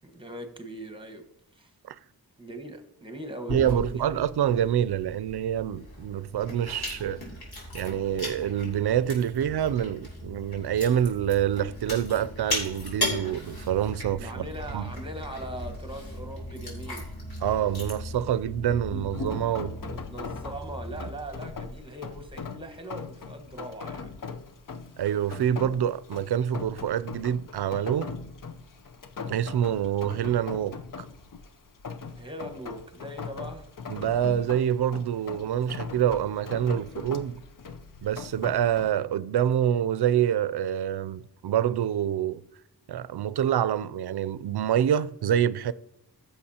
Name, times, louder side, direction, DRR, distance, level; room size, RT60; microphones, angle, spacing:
voice 1, 0.0-1.3 1.5-1.7 2.4-4.1 14.2-17.1 19.2-24.1 32.2-33.7, right 1 dB, 15° right, 1.4 m, -40 dB
Chewing mastication, 3.5-19.2, left 1 dB, 75° left, 4.0 m, -38 dB
voice 2, 3.5-7.2 7.7-14.5 14.7-14.8 17.4-19.7 25.0-28.1 29.3-30.8 33.9-37.4 38.0-42.4 42.9-45.7, right 10 dB, 75° right, 0.5 m, -26 dB
sound 1, 5.8-21.8, equal, 20° left, 3.4 m, -43 dB
Rain, 19.1-38.9, left 5 dB, 55° left, 0.8 m, -40 dB
15.0 x 6.9 x 2.9 m
wide cardioid pair, 95°, 39 cm